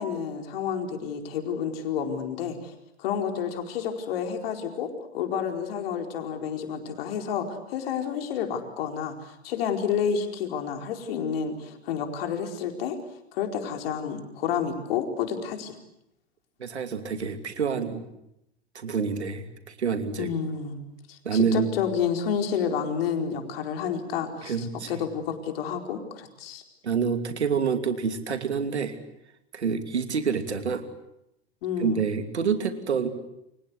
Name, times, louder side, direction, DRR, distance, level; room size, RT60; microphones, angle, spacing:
voice 1, 0.0-2.7 3.0-13.0 13.3-15.7 20.2-26.6 31.6-32.0, left 7 dB, 60° left, 5 dB, 4.6 m, -30 dB
voice 2, 16.6-18.0 18.7-20.3 21.2-21.7 24.4-24.9 26.8-29.0 29.5-30.9 31.8-33.1, right 6 dB, 80° right, 8 dB, 2.8 m, -27 dB
29.0 x 24.5 x 8.3 m, 0.82 s
figure-of-eight pair, 95°, 33 cm